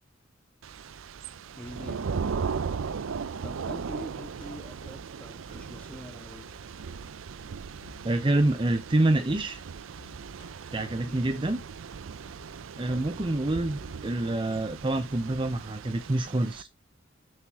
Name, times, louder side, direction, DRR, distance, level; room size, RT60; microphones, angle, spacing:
Thunder / Rain, 0.6-16.6, right 5 dB, 80° right, 0.5 m, -38 dB
sound 1, 1.5-15.6, left 3 dB, 40° left, 2.4 m, -57 dB
voice 1, 1.6-2.1 3.4-6.4 11.1-11.2 12.9-13.1, equal, 5° left, 1.4 m, -44 dB
voice 2, 8.0-9.6 10.7-11.6 12.8-16.7, right 2 dB, 25° right, 0.6 m, -27 dB
7.1 x 6.6 x 2.8 m
head